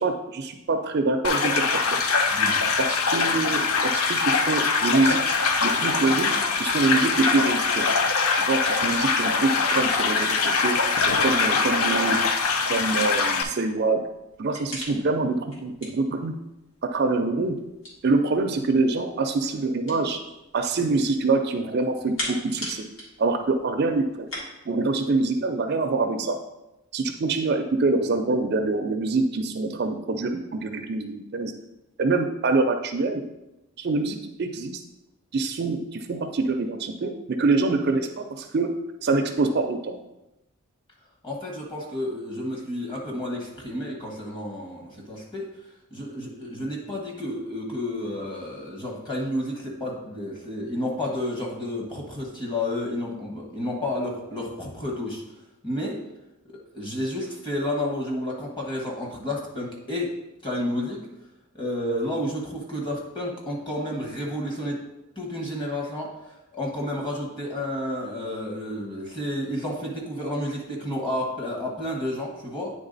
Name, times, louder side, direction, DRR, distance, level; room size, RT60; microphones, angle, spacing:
voice 1, 0.0-2.0 2.8-7.9 8.3-10.8 11.0-12.3 12.7-14.0 14.4-16.3 16.8-17.6 18.0-20.2 20.5-22.9 23.2-24.3 24.7-26.4 26.9-31.5 32.0-33.2 33.8-34.8 35.3-38.7 39.0-40.0, right 3 dB, 45° right, 6 dB, 0.4 m, -25 dB
sound 1, 1.2-13.4, left 4 dB, 80° left, 0.6 m, -23 dB
sound 2, 9.8-24.4, equal, 60° left, 2.0 m, -43 dB
voice 2, 41.2-45.5 45.9-55.2 55.6-56.0 56.7-60.1 60.4-61.0 61.5-64.8 65.2-66.1 66.5-72.7, left 1 dB, 20° left, -1 dB, 1.2 m, -31 dB
8.9 x 3.6 x 3.9 m, 0.94 s
head